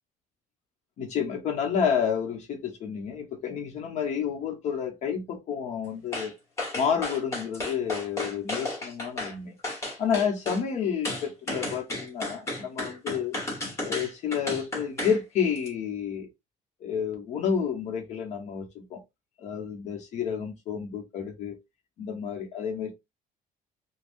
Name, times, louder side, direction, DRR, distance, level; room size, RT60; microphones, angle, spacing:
voice 1, 1.0-6.3 6.7-9.5 10.0-13.4 13.8-16.3 16.8-19.0 19.4-21.6 22.0-22.9, left 7 dB, 50° left, 1.0 m, -30 dB
sound 1, 6.1-6.3 6.6-9.3 9.6-10.6 11.0-15.2 15.5-15.7, left 1 dB, 20° left, 1.3 m, -33 dB
3.5 x 2.3 x 2.5 m
cardioid pair, 170°, 15 cm